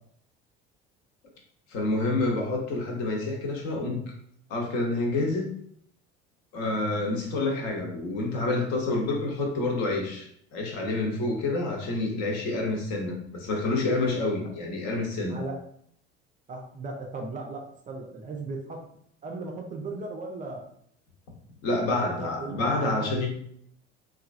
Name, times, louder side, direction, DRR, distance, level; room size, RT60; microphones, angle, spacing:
voice 1, 1.7-4.0 4.5-5.5 6.5-15.4 21.6-23.3, left 2 dB, 50° left, 1 dB, 0.8 m, -28 dB
voice 2, 15.3-15.6 16.5-18.8 19.2-20.6 21.9-22.7, right 3 dB, 25° right, 1 dB, 0.4 m, -37 dB
3.1 x 2.3 x 2.4 m, 0.67 s
figure-of-eight pair, 65°, 33 cm